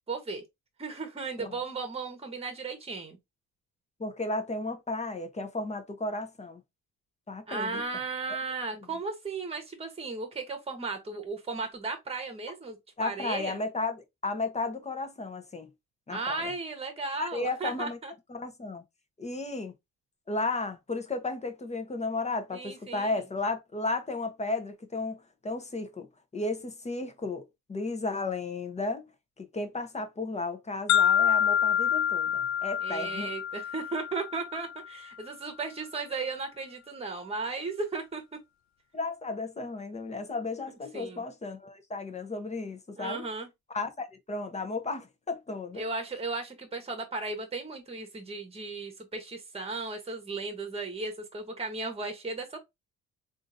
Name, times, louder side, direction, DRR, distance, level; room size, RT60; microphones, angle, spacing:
voice 1, 0.1-0.4 0.8-3.2 7.5-13.6 16.1-18.1 22.5-23.2 32.8-38.4 40.9-41.2 43.0-43.5 45.7-52.6, right 3 dB, 20° right, 1.1 m, -35 dB
voice 2, 4.0-6.6 7.3-7.8 13.0-14.0 14.2-15.7 16.1-16.4 17.2-18.0 18.3-18.8 19.2-19.7 20.3-26.1 26.3-27.4 27.7-29.0 29.4-33.3 38.9-43.2 43.7-45.8, left 3 dB, 20° left, 0.7 m, -34 dB
sound 1, 30.9-34.9, left 9 dB, 65° left, 0.5 m, -27 dB
3.6 x 2.6 x 2.6 m
cardioid pair, 90°, 30 cm